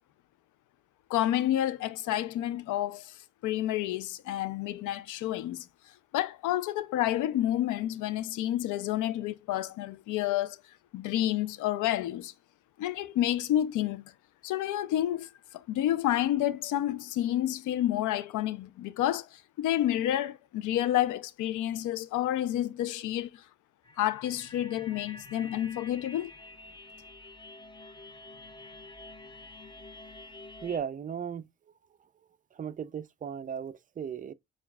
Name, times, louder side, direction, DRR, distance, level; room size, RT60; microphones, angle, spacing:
voice 1, 1.1-3.2 3.4-5.7 6.1-10.6 10.9-12.3 12.8-14.0 14.4-23.4 24.0-26.3, left 12 dB, 80° left, 0.5 m, -29 dB
sound 1, 23.8-30.8, left 2 dB, 15° left, 0.7 m, -48 dB
voice 2, 30.6-31.5 32.5-34.3, right 8 dB, 25° right, 0.4 m, -36 dB
6.9 x 2.3 x 2.3 m
cardioid pair, 90°, 30 cm